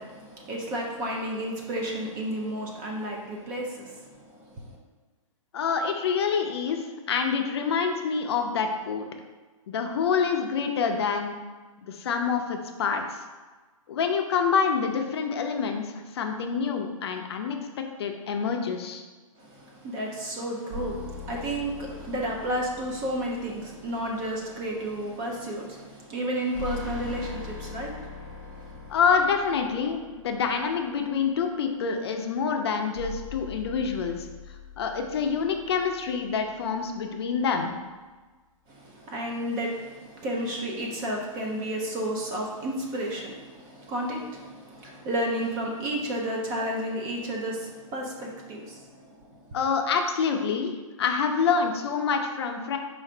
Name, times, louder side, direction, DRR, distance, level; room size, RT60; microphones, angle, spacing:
voice 1, 0.0-4.8 19.4-28.9 38.7-49.6, right 1 dB, 20° right, -1 dB, 0.4 m, -32 dB
voice 2, 5.5-9.1 9.7-11.4 11.8-13.2 13.9-19.0 28.9-34.3 34.8-37.7 49.5-52.8, left 6 dB, 45° left, 4 dB, 0.5 m, -27 dB
sound 1, 20.7-25.1 26.5-31.4 32.9-37.3, left 3 dB, 40° right, 0.9 m, -42 dB
4.8 x 2.5 x 4.3 m, 1.3 s
hypercardioid pair, 160°, 18 cm